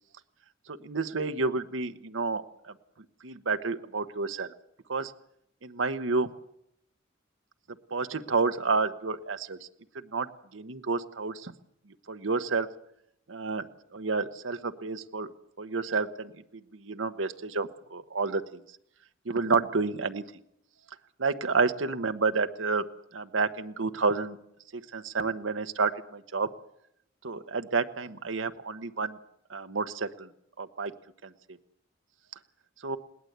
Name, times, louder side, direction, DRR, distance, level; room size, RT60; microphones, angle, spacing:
voice 1, 0.7-2.4 3.2-4.5 4.9-5.1 5.6-6.3 7.9-9.6 10.1-10.3 10.5-11.5 12.1-12.7 13.3-13.6 13.9-15.3 15.6-16.3 16.7-18.4 19.3-20.2 21.2-22.8 23.1-24.4 24.7-26.5 27.2-29.2 29.5-30.3 30.6-30.9 31.2-31.3 32.8-33.0, right 4 dB, 90° right, 10 dB, 1.0 m, -29 dB
21.0 x 18.0 x 8.1 m, 0.76 s
head